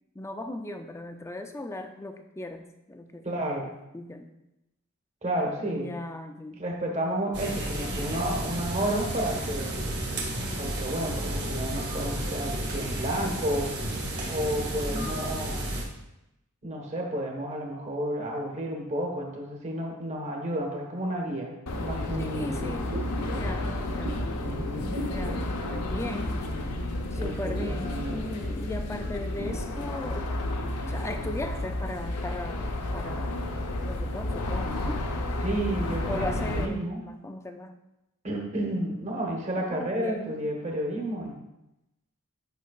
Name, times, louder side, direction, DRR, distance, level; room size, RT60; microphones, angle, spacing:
voice 1, 0.1-3.4 3.9-4.3 5.6-6.6 14.9-15.4 22.2-23.0 23.3-24.2 25.0-26.5 27.1-30.3 30.9-33.4 33.8-35.1 36.1-37.8 39.6-40.4, left 1 dB, 10° left, 6 dB, 0.4 m, -38 dB
voice 2, 3.2-3.7 5.2-5.9 6.6-9.8 10.6-13.7 14.3-15.6 16.6-22.5 24.4-25.0 27.1-28.2 35.4-37.0 38.2-41.4, right 1 dB, 30° right, 0 dB, 1.2 m, -31 dB
sound 1, 7.3-15.8, right 1 dB, 50° right, 1.7 m, -32 dB
sound 2, 21.7-36.7, left 1 dB, 85° left, 0.8 m, -31 dB
sound 3, 22.6-27.0 27.3-30.8 31.2-31.3, right 1 dB, 70° right, 0.9 m, -40 dB
9.3 x 5.6 x 2.4 m, 0.91 s
head